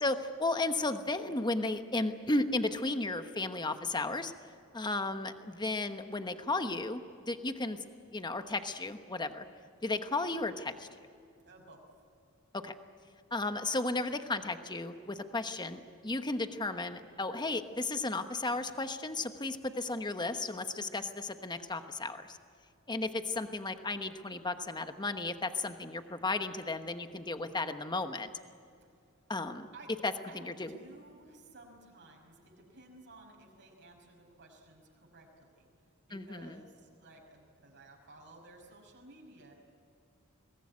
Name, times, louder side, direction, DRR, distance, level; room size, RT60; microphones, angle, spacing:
voice 1, 0.0-4.3 4.7-7.8 8.1-9.4 9.8-10.9 12.5-12.7 13.3-22.4 22.9-28.3 29.3-29.7 30.0-30.7 36.1-36.6, left 2 dB, 20° left, 8 dB, 1.1 m, -34 dB
voice 2, 11.5-11.9 28.8-28.9 29.7-29.9 30.3-35.7 36.1-39.5, right 2 dB, 55° right, 0 dB, 5.6 m, -55 dB
23.5 x 19.5 x 9.7 m, 2.4 s
head